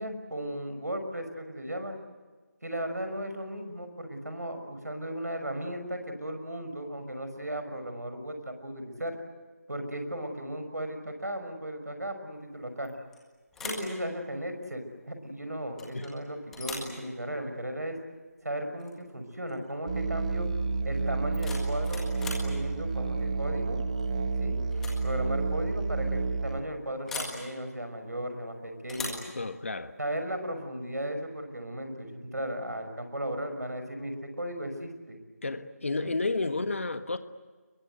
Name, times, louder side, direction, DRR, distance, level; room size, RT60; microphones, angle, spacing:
voice 1, 0.0-2.0 2.6-9.2 9.7-12.9 13.6-18.0 18.4-20.5 20.8-22.0 22.4-23.8 24.4-24.6 25.0-29.2 30.0-35.2 36.0-36.1, right 1 dB, 75° right, 6.1 m, -36 dB
sound 1, 12.8-13.2 13.5-13.9 15.8-16.1 16.5-16.9 18.8-19.0 19.3-19.7 21.1-22.5 24.0-24.3 24.7-25.0 25.3-25.4 27.1-27.4 28.9-29.3, left 3 dB, 5° left, 1.8 m, -39 dB
Musical instrument, 19.9-26.6, right 4 dB, 25° right, 1.2 m, -30 dB
voice 2, 29.3-29.9 35.4-37.2, left 3 dB, 50° left, 1.4 m, -31 dB
30.0 x 22.5 x 8.1 m
figure-of-eight pair, 165°, 9 cm